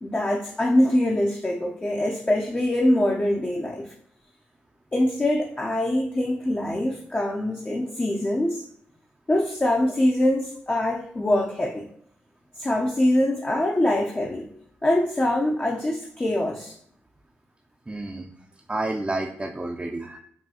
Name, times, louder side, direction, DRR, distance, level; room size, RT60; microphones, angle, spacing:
voice 1, 0.0-3.9 4.9-8.7 9.3-11.9 12.6-14.5 14.8-16.8, left 1 dB, 25° left, -1 dB, 0.6 m, -23 dB
voice 2, 17.9-18.3 18.7-20.2, right 2 dB, 20° right, 1 dB, 0.5 m, -30 dB
5.4 x 2.3 x 2.8 m, 0.68 s
supercardioid pair, 40°, 5 cm